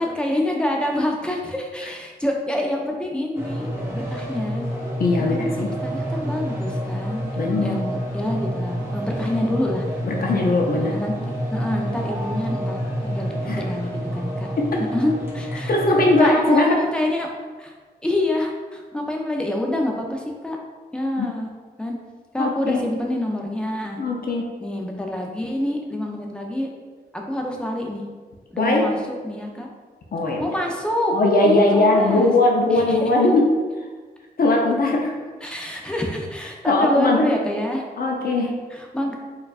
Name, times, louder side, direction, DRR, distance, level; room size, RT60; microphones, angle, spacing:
voice 1, 0.0-3.7 3.9-4.6 5.3-7.2 7.6-9.9 10.7-11.1 11.5-14.5 14.9-15.7 16.2-17.3 17.6-17.7 18.0-20.6 20.9-21.5 21.8-22.0 22.3-24.0 24.6-26.7 27.1-28.0 28.5-29.7 30.4-31.2 31.4-32.3 32.7-33.0 35.4-37.8 38.7-39.1, left 1 dB, 5° left, 0 dB, 0.5 m, -26 dB
sound 1, 3.3-16.2, equal, 15° right, 1.2 m, -28 dB
voice 2, 5.0-5.7 7.4-7.8 10.0-10.9 13.4-13.6 14.6-14.8 15.7-16.8 21.2-21.3 22.4-22.9 24.0-24.4 28.6-28.9 30.1-30.5 31.1-33.5 34.4-35.2 36.6-37.3 38.0-38.5, left 2 dB, 65° left, -1 dB, 0.5 m, -19 dB
4.4 x 2.4 x 2.4 m, 1.4 s
wide cardioid pair, 95°, 17 cm